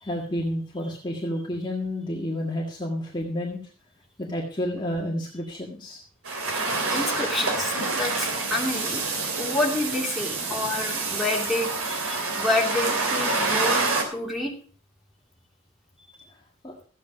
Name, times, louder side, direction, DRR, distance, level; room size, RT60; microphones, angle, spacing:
voice 1, 0.0-3.6 4.2-6.0 16.6-16.7, left 1 dB, 20° left, -2 dB, 1.8 m, -30 dB
sound 1, 6.2-14.0, right 3 dB, 80° right, 3.1 m, -27 dB
voice 2, 6.9-9.0 9.4-14.5, left 2 dB, ahead, -1 dB, 3.0 m, -28 dB
14.0 x 8.5 x 5.0 m, 0.43 s
head